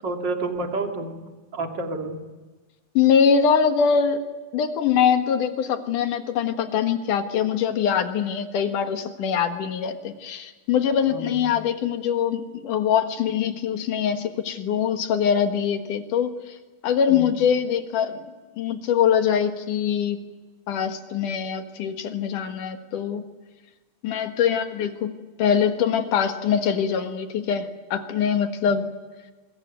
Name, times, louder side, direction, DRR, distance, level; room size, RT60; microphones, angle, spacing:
voice 1, 0.0-2.2 11.1-11.6 17.1-17.3, right 2 dB, 35° right, 3 dB, 2.7 m, -30 dB
voice 2, 2.9-4.2 4.5-16.3 16.8-18.2 18.6-20.2 20.7-23.2 24.0-25.1 25.4-28.9, left 7 dB, 65° left, 7 dB, 2.9 m, -23 dB
24.0 x 22.0 x 9.4 m, 1.2 s
omnidirectional pair, 4.0 m